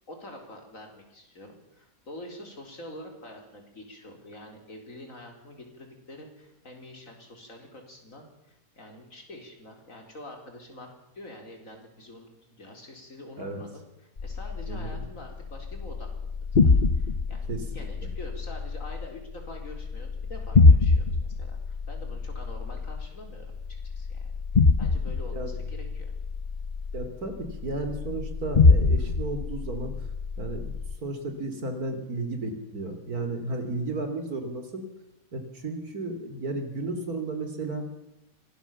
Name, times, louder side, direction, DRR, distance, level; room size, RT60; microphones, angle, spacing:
voice 1, 0.1-13.9 14.2-16.1 16.6-23.5 23.9-24.3 24.8-26.1, left 1 dB, 60° left, 3 dB, 4.5 m, -46 dB
sound 1, 14.2-31.0, left 4 dB, 35° left, 1.1 m, -25 dB
voice 2, 14.7-15.0 17.5-17.9 25.3-25.5 26.9-29.9 30.4-30.7 31.0-34.9 35.3-37.8, right 2 dB, 80° right, 7 dB, 3.5 m, -33 dB
25.0 x 18.0 x 7.2 m, 0.89 s
omnidirectional pair, 1.6 m